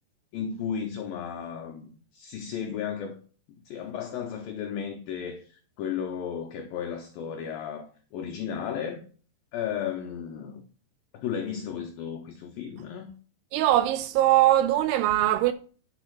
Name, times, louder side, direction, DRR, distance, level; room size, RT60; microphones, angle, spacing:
voice 1, 0.3-3.2 3.7-9.0 9.5-10.6 11.1-13.1, left 8 dB, 85° left, 2.0 m, -34 dB
voice 2, 13.5-15.5, right 13 dB, 90° right, 2.3 m, -21 dB
10.0 x 5.0 x 5.9 m
omnidirectional pair, 5.3 m